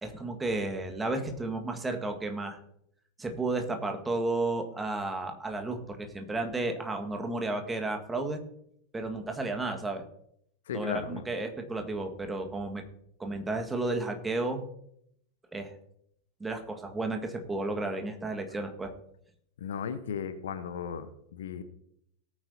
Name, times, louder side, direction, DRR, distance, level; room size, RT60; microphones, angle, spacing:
voice 1, 0.0-2.6 3.2-8.4 8.9-10.0 10.7-12.8 13.2-14.6 15.5-15.7 16.4-18.9, right 2 dB, 10° right, 4 dB, 1.8 m, -32 dB
voice 2, 10.7-11.2 19.6-21.6, left 7 dB, 60° left, 11 dB, 1.1 m, -36 dB
18.5 x 9.4 x 2.8 m, 0.72 s
figure-of-eight pair, 90°, 0 cm